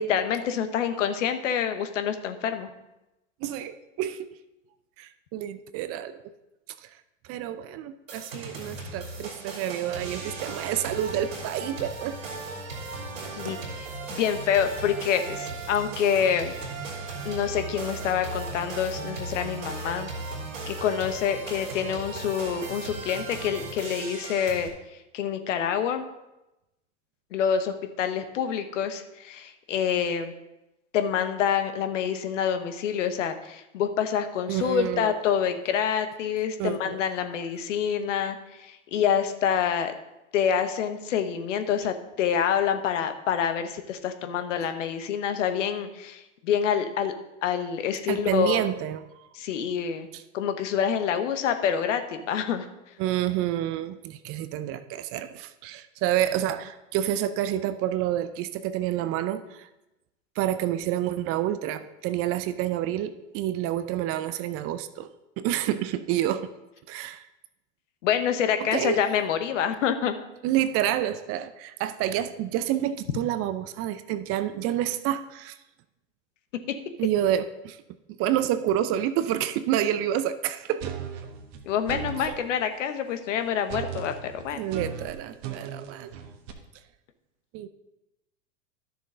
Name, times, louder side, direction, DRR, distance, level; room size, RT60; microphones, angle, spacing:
voice 1, 0.0-2.7 13.4-13.6 14.1-16.5 17.2-20.1 20.7-24.7 25.1-26.0 27.3-30.3 30.9-39.9 40.3-47.1 47.4-48.6 49.3-50.1 50.3-52.7 68.0-70.1 76.7-76.8 81.6-84.6, left 8 dB, 70° left, 8 dB, 1.1 m, -27 dB
voice 2, 3.4-4.4 5.0-6.2 6.8-6.9 7.3-12.2 13.2-13.6 34.5-35.2 36.6-37.0 48.1-49.3 50.1-50.2 53.0-59.7 60.4-65.1 65.4-66.5 66.9-67.3 68.7-69.0 70.4-75.6 77.0-77.8 78.1-81.0 82.3-82.4 84.5-86.1 87.5-87.7, right 11 dB, 35° right, 12 dB, 0.6 m, -28 dB
sound 1, 8.1-24.7, right 3 dB, 85° right, 3.0 m, -37 dB
sound 2, 80.8-82.4 83.7-86.5, right 7 dB, 55° right, 1.3 m, -36 dB
12.0 x 6.8 x 3.8 m, 0.95 s
hypercardioid pair, 100°, 39 cm